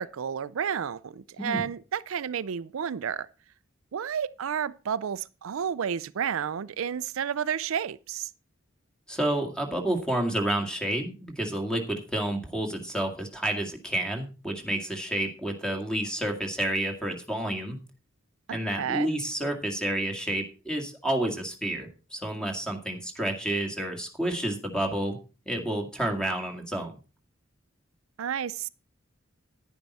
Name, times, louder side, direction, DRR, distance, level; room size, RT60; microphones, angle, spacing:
voice 1, 0.0-3.3 3.9-8.3 18.5-19.1 28.2-28.7, right 8 dB, 80° right, 0.4 m, -31 dB
voice 2, 9.1-17.8 18.5-25.2 25.5-26.9, right 1 dB, 5° left, 1.9 m, -30 dB
10.5 x 10.5 x 4.1 m
head